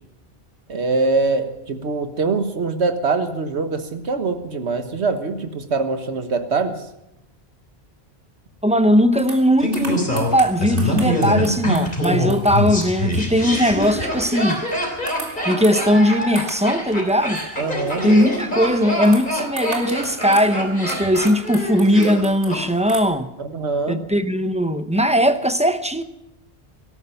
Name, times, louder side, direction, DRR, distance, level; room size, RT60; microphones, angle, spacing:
voice 1, 0.7-6.9 17.6-18.1 23.4-24.0, right 3 dB, 80° right, 1.6 m, -23 dB
voice 2, 8.6-14.6 15.4-17.4 18.0-23.3 23.9-26.0, equal, 5° right, 0.7 m, -19 dB
sound 1, 9.2-14.8 15.1-16.8 17.1-18.4 19.0-20.5 20.9-23.0, right 2 dB, 55° right, 2.7 m, -38 dB
Laughter, 9.6-22.6 22.9-23.0, left 1 dB, 45° left, 3.6 m, -24 dB
18.0 x 13.5 x 5.7 m
omnidirectional pair, 1.1 m